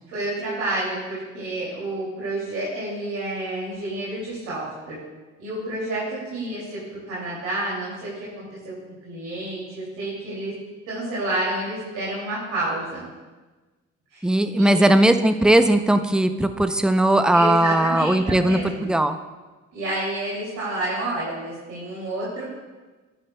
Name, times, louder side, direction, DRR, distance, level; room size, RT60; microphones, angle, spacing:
voice 1, 0.1-5.0 5.4-8.7 9.1-10.5 10.9-13.0 14.1-14.3 14.6-15.0 17.3-18.9 19.7-22.5, right 1 dB, 80° right, -7 dB, 2.6 m, -29 dB
voice 2, 14.2-19.2, right 1 dB, 5° right, 8 dB, 0.5 m, -18 dB
11.5 x 8.9 x 2.2 m, 1.2 s
cardioid pair, 90°, 30 cm